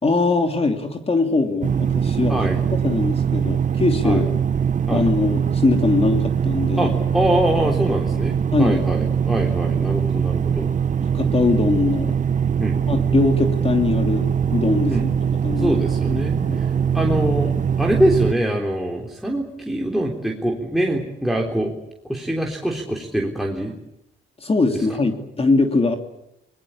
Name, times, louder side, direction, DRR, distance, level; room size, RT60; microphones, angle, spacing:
voice 1, 0.0-2.3 2.8-4.3 4.9-6.9 8.5-8.8 11.1-12.2 12.9-15.1 15.4-15.8 16.1-16.6 24.4-26.0, left 3 dB, 30° left, 5 dB, 2.9 m, -21 dB
sound 1, 1.6-18.3, right 7 dB, 40° right, 1.0 m, -22 dB
voice 2, 2.3-2.6 4.0-4.2 4.9-5.1 6.8-10.7 12.6-12.8 14.9-15.1 15.6-21.7 22.1-23.7 24.7-24.8, right 1 dB, ahead, -1 dB, 3.6 m, -24 dB
24.0 x 21.0 x 8.6 m, 0.84 s
cardioid pair, 90°, 20 cm